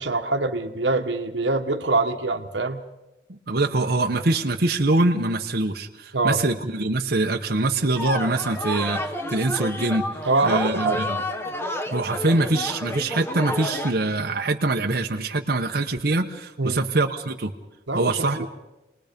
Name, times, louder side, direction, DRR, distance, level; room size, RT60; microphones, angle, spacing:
voice 1, 0.0-2.8 6.1-6.4 10.3-11.0 16.6-16.8 17.9-18.5, right 3 dB, 85° right, 5 dB, 1.3 m, -24 dB
voice 2, 3.3-9.0 9.3-10.0 10.4-11.2 11.9-17.5 17.9-18.5, right 2 dB, 60° right, 2 dB, 1.1 m, -24 dB
sound 1, 7.9-13.9, left 1 dB, 15° left, 1.2 m, -30 dB
28.5 x 20.0 x 5.3 m, 0.99 s
head